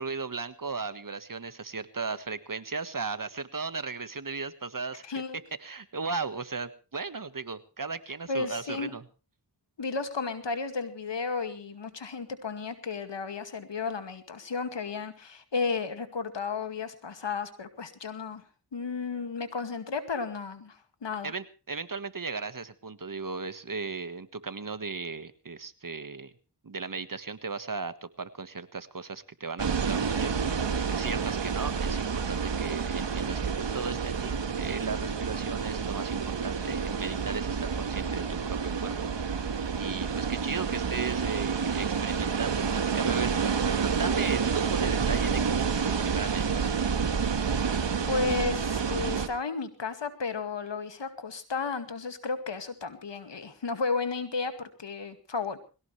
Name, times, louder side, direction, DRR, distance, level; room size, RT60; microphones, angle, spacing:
voice 1, 0.0-5.0 5.6-9.0 21.2-26.3 26.6-46.8, right 4 dB, 50° right, 12 dB, 1.6 m, -36 dB
voice 2, 5.0-5.4 8.3-8.9 9.8-18.4 18.7-21.3 48.1-55.6, left 4 dB, 80° left, 9 dB, 2.3 m, -33 dB
sound 1, 29.6-49.3, right 6 dB, 85° right, 1.7 m, -29 dB
22.0 x 17.5 x 3.3 m, 0.33 s
cardioid pair, 45°, 43 cm